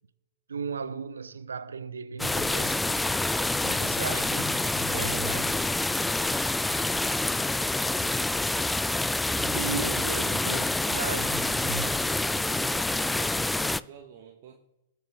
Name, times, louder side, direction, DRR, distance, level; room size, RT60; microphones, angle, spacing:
voice 1, 0.5-3.0 3.6-5.6 9.4-11.8, right 5 dB, 80° right, 0.8 m, -36 dB
sound 1, 2.2-13.8, left 2 dB, 5° left, 0.3 m, -27 dB
voice 2, 11.6-14.6, right 7 dB, 50° right, 1.4 m, -47 dB
20.0 x 6.8 x 3.6 m
figure-of-eight pair, 105°, 0 cm